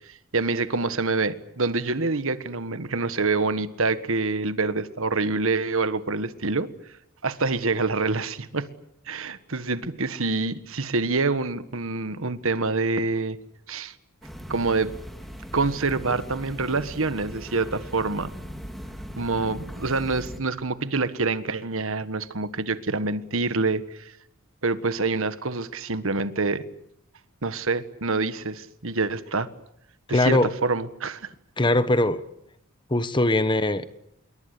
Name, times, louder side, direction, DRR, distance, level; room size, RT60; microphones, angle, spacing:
voice 1, 0.1-6.7 7.2-8.7 9.1-13.4 13.7-13.9 14.5-14.9 15.5-18.3 19.2-24.1 24.6-26.6 27.4-29.5 30.1-31.3, right 3 dB, 65° right, 12 dB, 1.5 m, -26 dB
sound 1, 14.2-20.4, equal, ahead, 2.9 m, -39 dB
voice 2, 30.1-30.5 31.6-32.2 32.9-33.9, left 1 dB, 20° left, 13 dB, 1.2 m, -21 dB
27.5 x 23.0 x 8.4 m, 0.76 s
head